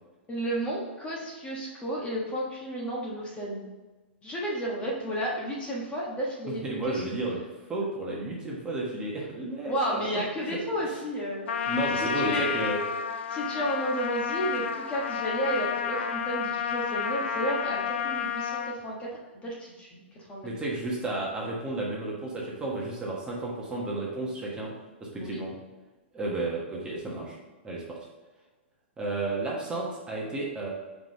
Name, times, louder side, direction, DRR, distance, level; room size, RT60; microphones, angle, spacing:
voice 1, 0.3-3.7 4.2-7.0 9.7-11.5 11.9-12.5 13.3-20.5 25.2-25.4, right 1 dB, 20° left, -4 dB, 1.3 m, -32 dB
voice 2, 6.6-7.4 7.7-10.1 10.5-10.6 10.9-11.0 11.7-12.8 20.4-24.7 25.0-25.6 26.1-27.4 27.6-28.0 29.0-30.7, right 2 dB, 15° right, -4 dB, 1.3 m, -32 dB
Trumpet, 11.5-18.8, left 7 dB, 75° left, 0.5 m, -30 dB
4.8 x 3.8 x 5.4 m, 1.2 s
hypercardioid pair, 130°, 6 cm